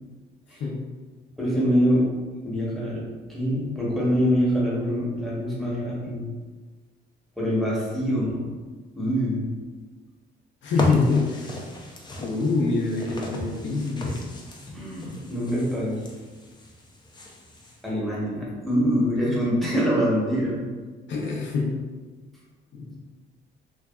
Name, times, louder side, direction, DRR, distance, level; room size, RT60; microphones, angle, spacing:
voice 1, 1.4-2.1 2.4-3.0 3.3-6.3 7.4-8.5 8.9-9.5 10.9-11.1 14.7-16.0 17.8-20.7, equal, ahead, -7 dB, 0.9 m, -24 dB
voice 2, 10.6-11.6 12.2-14.2 21.1-21.7 22.7-22.9, left 4 dB, 70° left, -1 dB, 0.6 m, -25 dB
sound 1, 10.7-17.8, left 1 dB, 20° left, 0.4 m, -36 dB
2.5 x 2.3 x 2.2 m, 1.4 s
cardioid pair, 90°, 20 cm